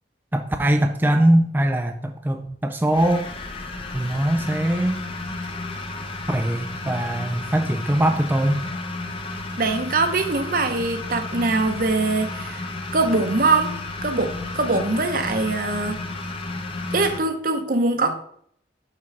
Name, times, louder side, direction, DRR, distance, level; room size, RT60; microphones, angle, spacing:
voice 1, 0.3-3.3 3.9-5.0 6.3-8.6, right 1 dB, 10° right, 5 dB, 0.4 m, -21 dB
sound 1, 2.9-17.2, left 2 dB, 30° left, 0.8 m, -32 dB
voice 2, 9.6-12.6 12.9-13.7 14.0-16.1 16.9-18.1, right 3 dB, 55° right, 7 dB, 0.9 m, -22 dB
6.0 x 6.0 x 4.6 m, 0.66 s
head